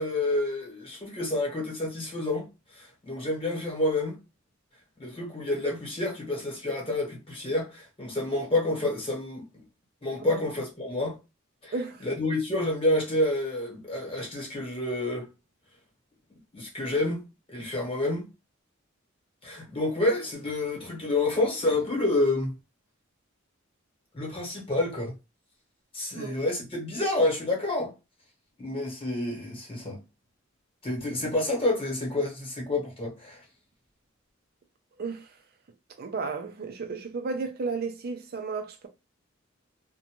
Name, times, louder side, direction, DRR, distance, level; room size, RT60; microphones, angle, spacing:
voice 1, 0.0-2.5 2.7-4.2 5.0-9.4 10.0-11.2 11.6-11.7 12.0-15.3 16.5-17.2 17.5-18.3 19.4-22.5 24.1-25.1 25.9-27.9 28.6-30.0 30.8-33.4, left 2 dB, 30° left, 1.1 m, -28 dB
voice 2, 11.7-12.0 26.1-26.4 35.0-35.3 36.0-38.9, right 4 dB, 50° right, 0.4 m, -33 dB
2.5 x 2.2 x 2.9 m
head